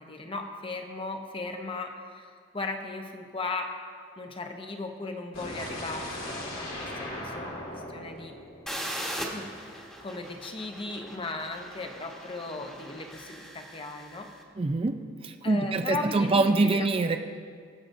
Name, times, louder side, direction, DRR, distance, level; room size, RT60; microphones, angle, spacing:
voice 1, 0.0-3.8 4.2-8.4 9.3-14.3 15.4-16.9, left 3 dB, 25° left, 4 dB, 0.8 m, -37 dB
sound 1, 5.3-9.3, left 1 dB, 90° left, 2.1 m, -38 dB
sound 2, 8.7-14.3, equal, 5° left, 1.2 m, -40 dB
voice 2, 14.6-17.2, right 3 dB, 30° right, 6 dB, 0.4 m, -25 dB
22.5 x 7.9 x 2.6 m, 2.1 s
head